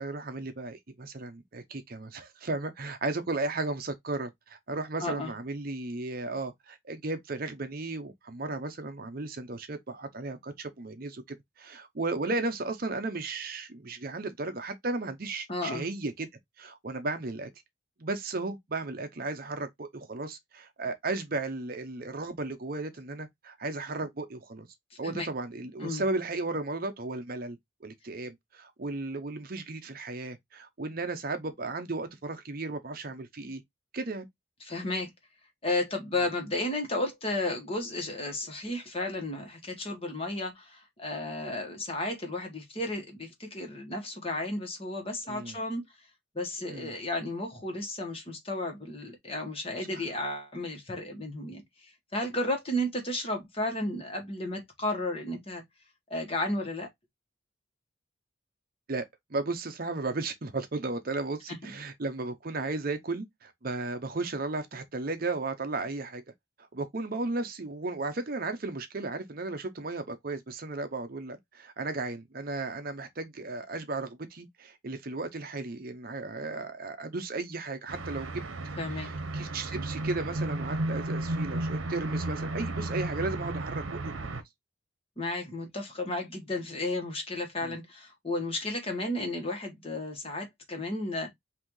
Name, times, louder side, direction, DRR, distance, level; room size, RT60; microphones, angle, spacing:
voice 1, 0.0-16.3 16.6-17.5 18.0-24.7 25.0-33.6 33.9-34.3 45.3-45.6 46.7-46.9 49.9-50.0 58.9-66.2 66.7-78.4 79.0-84.1 87.6-87.8, right 3 dB, 45° right, 0.7 m, -35 dB
voice 2, 5.0-5.3 15.5-15.9 25.0-25.3 25.8-26.0 34.6-35.1 35.6-45.8 46.3-55.6 56.1-56.9 61.5-61.6 78.8-79.1 85.2-91.3, left 1 dB, 30° left, 1.3 m, -33 dB
sound 1, 77.9-84.4, right 2 dB, 75° right, 0.8 m, -33 dB
5.8 x 2.7 x 3.0 m
head